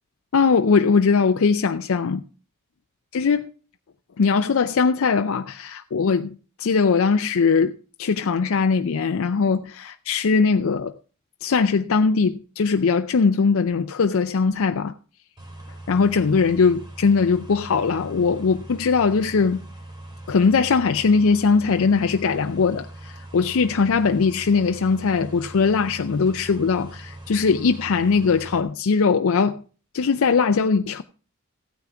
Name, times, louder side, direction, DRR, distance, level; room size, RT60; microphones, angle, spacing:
voice 1, 0.3-2.2 3.1-3.5 4.2-7.7 8.0-11.0 11.4-14.9 15.9-19.6 20.3-29.6 29.9-31.0, left 5 dB, 65° left, 0.5 m, -20 dB
sound 1, 15.4-28.6, right 1 dB, 20° right, 2.6 m, -41 dB
15.5 x 9.4 x 3.5 m
head